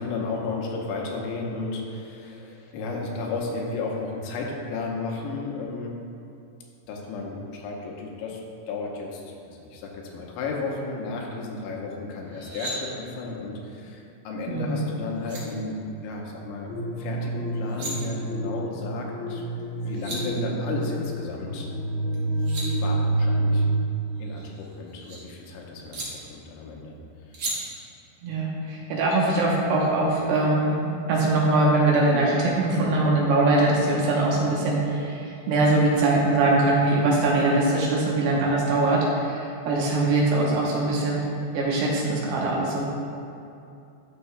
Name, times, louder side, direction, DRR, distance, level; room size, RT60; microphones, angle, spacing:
voice 1, 0.0-6.0 6.9-16.7 17.0-19.4 19.8-21.7 22.8-23.7 24.2-27.0 27.3-27.4, left 3 dB, 90° left, -1 dB, 3.2 m, -33 dB
sound 1, 12.3-12.8 14.8-14.9 15.2-15.4 17.5-17.9 19.6-19.7 19.9-20.2 22.1-22.7 24.2-25.2 25.9-26.1 27.3-27.5, right 2 dB, 55° right, 1.8 m, -35 dB
voice 2, 14.5-14.9 28.2-41.3 41.5-42.9, right 2 dB, 75° right, -3 dB, 2.8 m, -22 dB
sound 2, 16.7-23.7, right 2 dB, 70° left, 2.7 m, -28 dB
12.5 x 6.4 x 2.3 m, 2.7 s
omnidirectional pair, 5.2 m